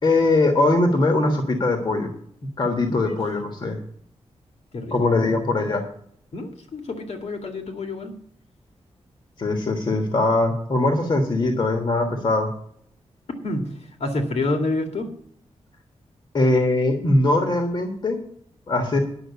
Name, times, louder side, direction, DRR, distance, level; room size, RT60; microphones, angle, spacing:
voice 1, 0.0-2.1 2.6-3.8 4.9-5.8 9.4-12.5 16.3-18.2 18.7-19.0, left 2 dB, 45° left, 5 dB, 1.4 m, -21 dB
voice 2, 2.9-3.2 4.7-5.3 6.3-8.1 13.4-13.7 14.0-15.1, left 2 dB, 70° left, 4 dB, 2.1 m, -28 dB
10.0 x 6.2 x 8.1 m, 0.66 s
wide cardioid pair, 130°, 11 cm